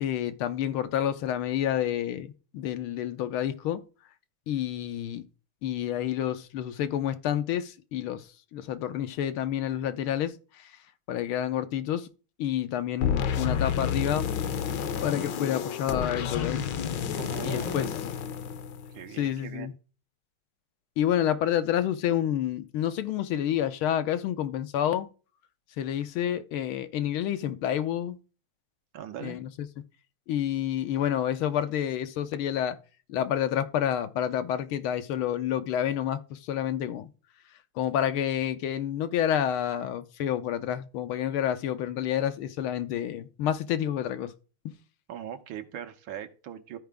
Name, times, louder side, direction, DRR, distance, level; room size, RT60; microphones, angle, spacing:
voice 1, 0.0-3.8 4.5-5.3 5.6-10.7 11.1-12.1 12.4-14.3 15.0-16.6 17.4-17.9 19.2-19.7 21.0-25.1 25.8-28.2 29.2-29.7 30.3-32.8 33.1-37.1 37.8-44.3 44.7-44.8, left 10 dB, 80° left, 1.6 m, -29 dB
sound 1, 13.0-19.2, left 7 dB, 65° left, 1.3 m, -30 dB
voice 2, 17.2-17.9 18.9-19.7 28.9-29.4 45.1-46.8, right 10 dB, 75° right, 1.7 m, -40 dB
13.0 x 4.8 x 3.5 m
omnidirectional pair, 2.3 m